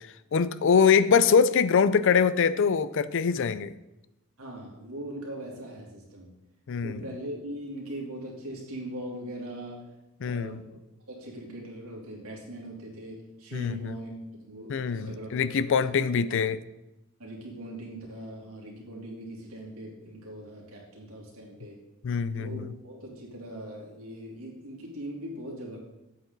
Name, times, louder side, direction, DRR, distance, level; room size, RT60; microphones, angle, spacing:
voice 1, 0.3-3.7 6.7-7.0 10.2-10.6 13.5-14.0 14.7-16.6 22.0-22.7, left 6 dB, 60° left, 16 dB, 0.4 m, -23 dB
voice 2, 4.4-6.3 6.8-9.9 10.2-10.8 11.1-14.1 14.4-16.1 17.2-21.7 22.3-25.8, right 1 dB, 90° right, -3 dB, 2.9 m, -40 dB
8.5 x 8.3 x 3.9 m, 0.94 s
head